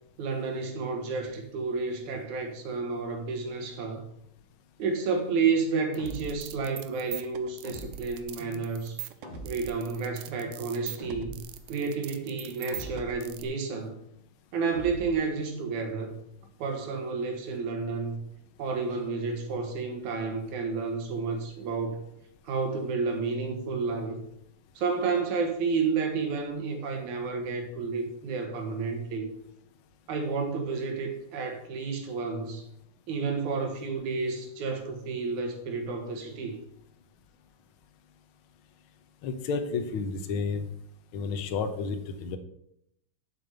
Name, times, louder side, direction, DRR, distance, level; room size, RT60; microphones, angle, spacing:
voice 1, 0.2-4.1 4.8-9.0 9.4-11.4 11.7-14.0 14.5-16.2 16.6-18.2 18.6-22.0 22.4-24.2 24.8-29.3 30.1-32.6 33.1-36.6, right 4 dB, 70° right, 4 dB, 2.8 m, -31 dB
sound 1, 5.9-6.6 7.6-8.3 9.2-9.9 11.0-11.6 12.7-13.3 14.7-15.3, right 1 dB, 35° left, 0.7 m, -42 dB
sound 2, 5.9-13.4, right 14 dB, 85° right, 2.2 m, -42 dB
voice 2, 39.2-40.7 41.1-42.4, left 5 dB, 75° left, 7 dB, 1.2 m, -31 dB
7.8 x 7.0 x 6.8 m, 0.76 s
omnidirectional pair, 3.7 m